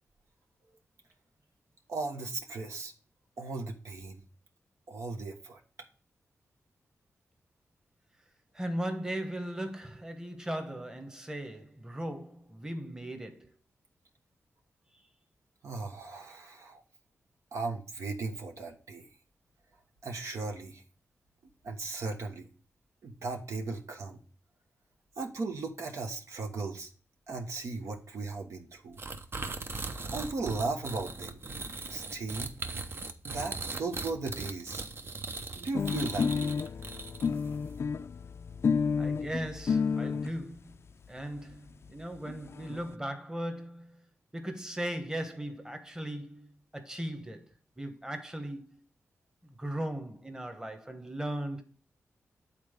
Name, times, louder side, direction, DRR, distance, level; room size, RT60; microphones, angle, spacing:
voice 1, 1.9-2.9 3.4-4.2 4.9-5.6 15.6-16.8 17.5-19.1 20.0-20.8 21.6-22.5 23.0-24.2 25.2-26.9 27.3-29.0 30.1-31.4 31.9-32.5 33.2-34.8 35.6-36.5, right 3 dB, 75° right, 1.2 m, -37 dB
voice 2, 8.5-13.5 39.0-40.8 41.1-44.0 44.3-48.8 49.4-51.6, right 1 dB, 10° right, 1.2 m, -38 dB
sound 1, 29.0-37.5, right 3 dB, 50° right, 0.8 m, -39 dB
sound 2, 35.7-40.3 41.2-41.3 41.5-41.6 41.9-42.0 42.2-42.8, left 5 dB, 55° left, 0.4 m, -30 dB
8.6 x 4.0 x 5.1 m
cardioid pair, 80°, 5 cm